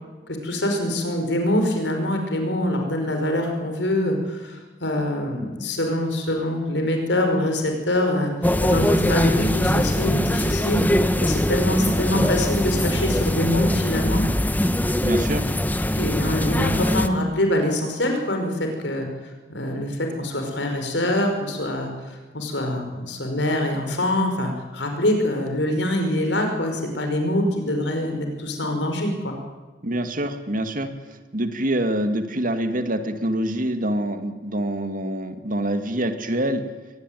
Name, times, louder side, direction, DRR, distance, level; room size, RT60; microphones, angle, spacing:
voice 1, 0.3-8.3 8.6-10.8 11.2-14.2 15.9-19.1 19.5-29.3, left 1 dB, 90° left, 4 dB, 5.3 m, -24 dB
sound 1, 8.4-17.1, left 1 dB, 10° left, 1.1 m, -22 dB
voice 2, 15.0-15.5 29.8-30.9 31.3-36.6, right 1 dB, 50° right, 8 dB, 2.2 m, -25 dB
23.5 x 19.5 x 9.3 m, 1.2 s
head